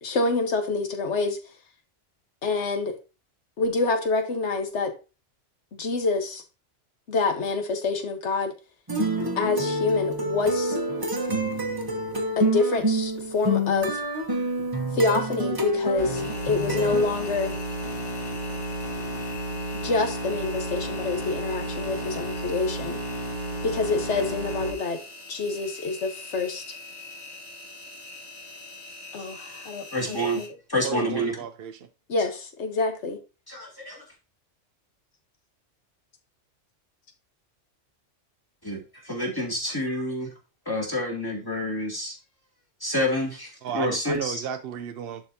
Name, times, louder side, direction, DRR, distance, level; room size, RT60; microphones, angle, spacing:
voice 1, 0.0-1.4 2.4-3.0 3.6-4.9 5.7-6.4 7.1-8.5 9.4-10.8 12.4-14.0 14.9-17.6 19.7-23.0 23.6-25.0 25.3-26.6 29.1-30.5 30.9-31.2 32.1-33.2, left 3 dB, 70° left, 1.5 m, -27 dB
sound 1, 8.9-17.0, right 1 dB, 20° right, 1.0 m, -27 dB
sound 2, 16.0-24.7, right 1 dB, 85° left, 1.9 m, -32 dB
Engine, 16.2-30.5, left 3 dB, 50° left, 2.5 m, -43 dB
voice 2, 29.9-30.4 30.7-31.4 33.5-34.0 38.6-40.3 40.7-42.2 42.8-44.4, equal, 20° left, 2.4 m, -28 dB
voice 3, 30.8-31.9 43.6-45.2, right 8 dB, 60° right, 0.7 m, -34 dB
11.0 x 4.4 x 2.7 m
omnidirectional pair, 1.2 m